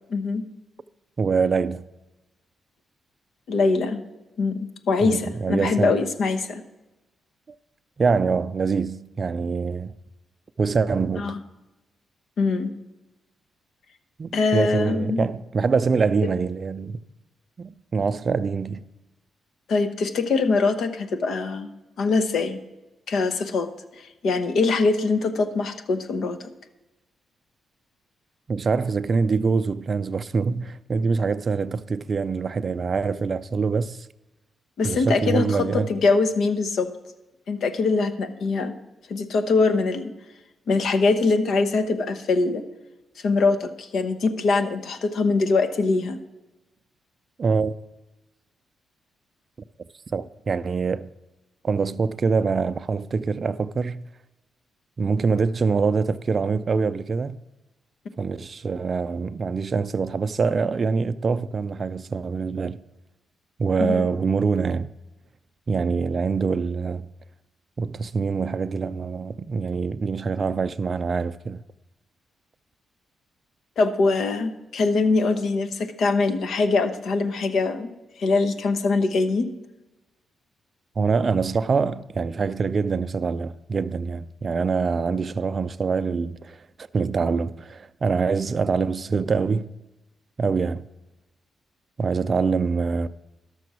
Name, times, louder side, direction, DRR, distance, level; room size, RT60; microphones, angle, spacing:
voice 1, 0.1-0.5 3.5-4.0 4.4-6.6 11.2-11.4 12.4-12.7 14.3-15.2 19.7-21.7 22.0-22.6 23.1-23.7 24.0-26.4 34.8-36.9 37.5-38.7 39.1-40.1 40.7-42.6 43.2-46.2 63.8-64.1 73.8-77.9 78.2-79.5, left 3 dB, 70° left, 0.9 m, -23 dB
voice 2, 1.2-1.8 5.0-6.0 8.0-9.9 10.6-11.3 14.2-17.0 17.6-18.8 28.5-34.0 34.8-35.9 47.4-47.7 50.1-51.1 51.6-54.0 55.0-57.4 58.2-62.8 63.6-64.9 65.7-67.1 67.8-71.6 81.0-89.7 90.4-90.9 92.0-93.1, right 5 dB, 45° right, 0.4 m, -24 dB
11.5 x 6.9 x 6.1 m
cardioid pair, 70°, 0 cm